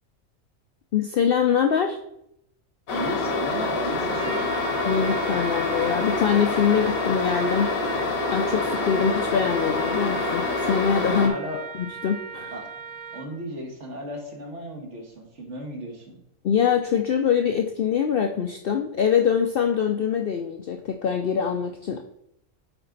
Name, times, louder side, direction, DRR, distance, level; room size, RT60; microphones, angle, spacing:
voice 1, 0.9-2.0 4.8-7.7 8.0-11.3 11.7-12.5 16.4-22.0, left 7 dB, 65° left, 5 dB, 0.6 m, -24 dB
sound 1, 2.9-11.3, left 3 dB, 90° left, 1.5 m, -26 dB
voice 2, 2.9-4.4 11.1-11.6 12.5-12.6 13.1-16.2, right 1 dB, 60° right, 1 dB, 1.8 m, -35 dB
Trumpet, 4.1-13.4, right 4 dB, 85° right, 1.1 m, -38 dB
8.8 x 4.2 x 3.9 m, 0.78 s
omnidirectional pair, 1.4 m